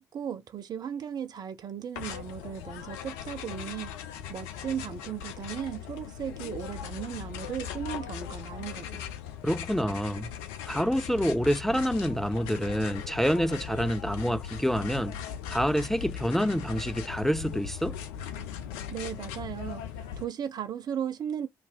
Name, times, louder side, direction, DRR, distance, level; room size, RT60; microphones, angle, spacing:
voice 1, 0.0-3.9 4.3-9.1 18.9-19.8 20.2-21.5, right 9 dB, 45° right, 0.8 m, -36 dB
sound 1, 1.9-20.3, left 9 dB, 70° left, 0.5 m, -39 dB
voice 2, 9.4-10.3 10.6-15.2 15.5-18.0, equal, 5° left, 0.3 m, -27 dB
3.4 x 2.8 x 4.6 m
figure-of-eight pair, 45°, 9 cm